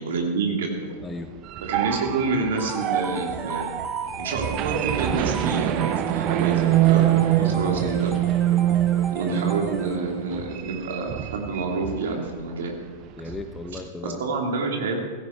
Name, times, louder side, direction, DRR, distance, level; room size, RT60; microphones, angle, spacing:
voice 1, 0.0-0.9 1.6-3.7 4.2-7.1 7.4-8.2 9.1-12.8 14.0-15.0, right 3 dB, 60° right, 1 dB, 2.9 m, -28 dB
voice 2, 1.0-1.3 6.2-6.5 7.4-7.7 13.2-14.3, left 3 dB, 15° left, 7 dB, 1.1 m, -36 dB
sound 1, 1.2-12.2 12.5-12.7 13.0-13.8, right 13 dB, 40° right, 0.7 m, -25 dB
sound 2, 2.6-10.3, right 3 dB, 10° right, 1.0 m, -37 dB
Car passing by, 3.1-13.7, right 3 dB, 85° left, 3.6 m, -43 dB
16.0 x 16.0 x 4.6 m, 1.5 s
figure-of-eight pair, 90°, 0 cm